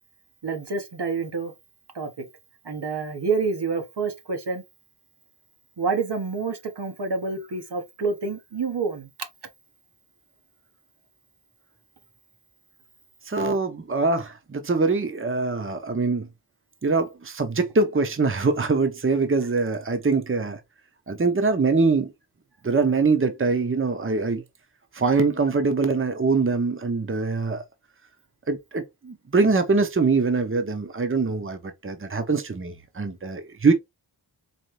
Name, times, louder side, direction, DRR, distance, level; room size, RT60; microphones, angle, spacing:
voice 1, 0.4-1.5 1.9-2.1 2.6-4.6 5.8-9.1, right 4 dB, 75° right, 1.2 m, -28 dB
voice 2, 13.3-16.3 16.8-20.6 21.1-22.1 22.6-24.4 24.9-27.6 28.5-33.7, right 4 dB, 30° right, 0.9 m, -23 dB
4.3 x 3.2 x 3.1 m
wide cardioid pair, 55°, 41 cm